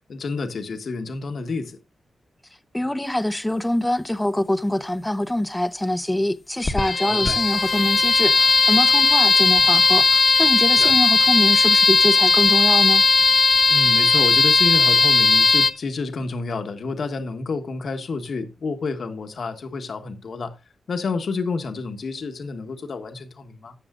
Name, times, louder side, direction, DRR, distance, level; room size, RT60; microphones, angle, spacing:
voice 1, 0.1-1.8 7.1-7.4 10.7-10.9 13.7-20.5 20.9-23.7, left 4 dB, 60° left, 1.4 m, -29 dB
voice 2, 2.7-13.0, left 1 dB, 10° left, 0.7 m, -24 dB
sound 1, 6.7-15.7, left 3 dB, 40° left, 1.2 m, -17 dB
17.0 x 7.2 x 2.5 m
wide cardioid pair, 105°, 0 cm